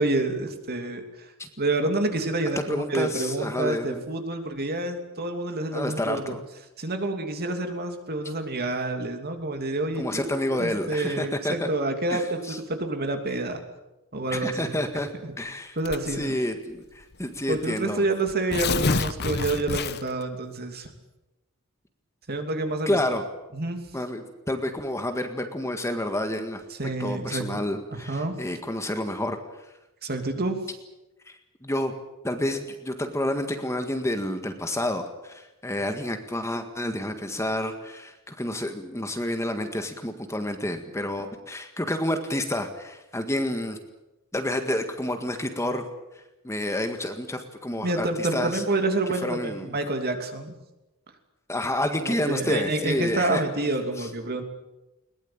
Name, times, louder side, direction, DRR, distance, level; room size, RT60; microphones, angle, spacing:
voice 1, 0.0-1.3 1.6-6.4 6.8-12.4 12.7-13.6 14.1-14.8 15.2-15.3 15.8-16.3 17.5-20.9 22.3-23.0 23.5-23.9 26.7-27.6 27.9-28.4 30.0-30.6 47.8-50.6 52.0-54.4, right 2 dB, 45° right, 6 dB, 2.9 m, -28 dB
voice 2, 2.7-4.0 5.7-6.4 10.0-11.7 12.1-12.6 14.3-15.1 15.4-15.8 16.1-18.0 22.8-23.2 23.9-26.6 27.0-29.4 31.3-31.4 31.6-31.9 32.2-43.8 44.3-45.9 46.4-48.6 49.2-49.8 51.5-53.4 54.0-54.1, left 1 dB, 15° left, 6 dB, 1.8 m, -29 dB
Tearing, 15.8-16.2 17.1-17.2 17.5-17.6 18.3-20.2, left 4 dB, 50° left, 1.1 m, -27 dB
21.5 x 20.0 x 8.8 m, 1.0 s
head